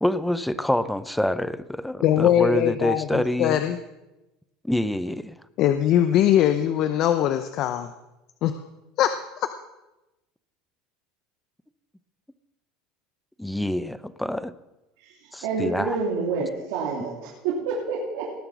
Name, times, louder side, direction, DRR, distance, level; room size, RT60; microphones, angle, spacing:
voice 1, 0.0-3.6 4.6-5.4 13.4-14.5 15.3-16.0, left 1 dB, 5° left, 14 dB, 0.5 m, -26 dB
voice 2, 2.0-3.8 5.6-7.9 8.4-8.5 9.0-9.1 9.4-9.5, left 11 dB, 45° left, 9 dB, 0.7 m, -21 dB
voice 3, 15.0-18.3, right 4 dB, 75° right, -4 dB, 3.1 m, -28 dB
18.5 x 7.4 x 6.1 m, 0.99 s
cardioid pair, 150°, 0 cm